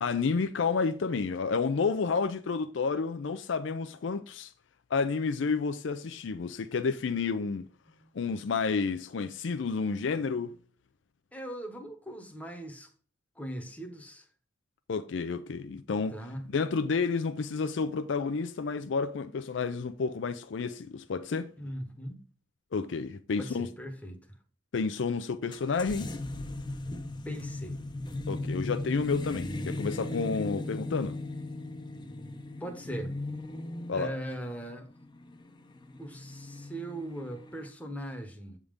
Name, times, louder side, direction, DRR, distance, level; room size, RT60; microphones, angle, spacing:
voice 1, 0.0-4.5 4.9-7.7 8.1-10.5 14.9-16.1 16.5-21.5 22.7-23.7 24.7-26.1 28.3-31.2 33.9-34.1, left 4 dB, 65° left, 0.4 m, -30 dB
voice 2, 11.3-12.9 13.4-14.3 16.1-16.5 21.6-22.2 23.4-24.2 27.2-27.8 32.6-33.1 33.9-34.9 36.0-38.6, right 1 dB, 10° left, 1.0 m, -39 dB
sound 1, 25.5-37.7, left 2 dB, 25° left, 0.6 m, -38 dB
8.3 x 3.7 x 5.1 m
head